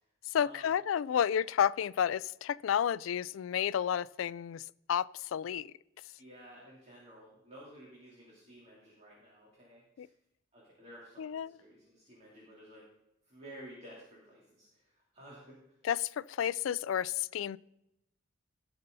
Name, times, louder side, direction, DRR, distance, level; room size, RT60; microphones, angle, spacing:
voice 1, 0.3-5.7 10.0-10.1 11.2-11.6 15.8-17.6, left 9 dB, 85° left, 0.3 m, -31 dB
voice 2, 6.2-10.1 10.5-12.9 13.3-15.6, right 1 dB, 35° right, 3.4 m, -53 dB
18.0 x 6.7 x 4.0 m
head